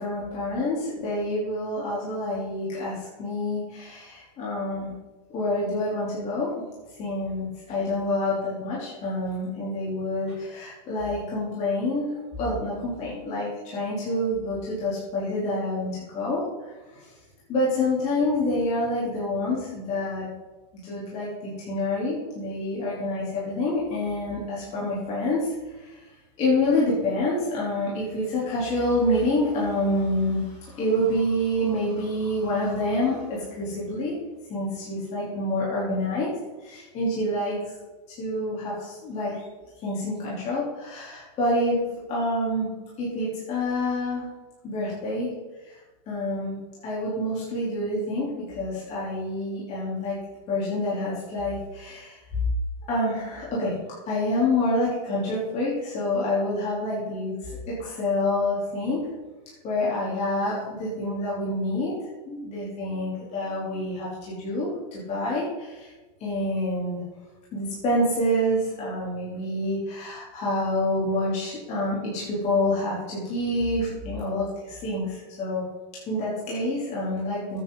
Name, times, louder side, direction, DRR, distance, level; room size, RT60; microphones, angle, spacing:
voice 1, 0.0-4.9 5.3-6.5 7.0-12.1 12.4-17.1 17.5-20.3 20.8-26.0 26.4-34.1 34.5-36.3 36.6-37.6 38.2-39.4 39.8-41.8 42.1-42.7 43.0-44.3 44.6-45.3 45.6-45.8 46.1-46.6 46.8-50.2 50.5-52.2 52.9-53.7 54.1-59.0 59.6-61.9 62.3-65.9 66.2-67.0 67.5-75.6 76.1-77.6, left 1 dB, 35° left, -7 dB, 4.1 m, -27 dB
13.5 x 9.4 x 4.2 m, 1.2 s
supercardioid pair, 150°, 21 cm